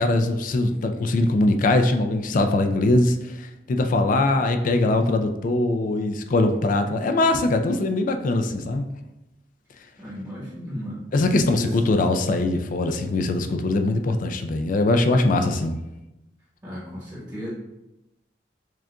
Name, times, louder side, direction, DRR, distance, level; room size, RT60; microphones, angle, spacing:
voice 1, 0.0-8.9 11.1-15.8, left 2 dB, 50° left, 6 dB, 0.4 m, -22 dB
voice 2, 10.0-11.0 11.5-11.8 16.6-17.5, equal, 25° right, -8 dB, 1.1 m, -35 dB
6.2 x 2.4 x 2.3 m, 0.94 s
head